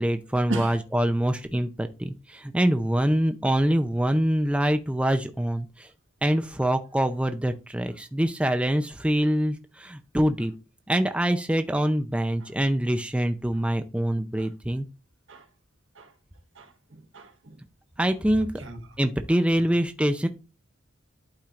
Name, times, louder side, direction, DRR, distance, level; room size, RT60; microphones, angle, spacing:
voice 1, 0.0-5.9 6.2-10.5 10.9-14.9 18.0-18.5 19.0-20.3, right 1 dB, 5° right, 0.5 m, -25 dB
voice 2, 16.5-17.6 18.6-18.8, right 1 dB, 75° right, 1.4 m, -37 dB
11.5 x 4.4 x 2.5 m
head